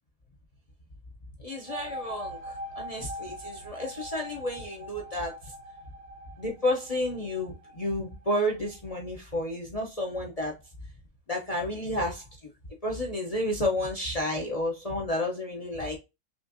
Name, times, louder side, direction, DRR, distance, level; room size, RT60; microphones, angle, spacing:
voice 1, 1.4-5.3 6.4-10.6 11.3-12.2 12.8-16.0, left 1 dB, 40° left, 0 dB, 0.6 m, -31 dB
sound 1, 1.5-8.9, equal, 70° right, 1.3 m, -43 dB
6.0 x 2.5 x 2.6 m, 0.25 s
omnidirectional pair, 1.5 m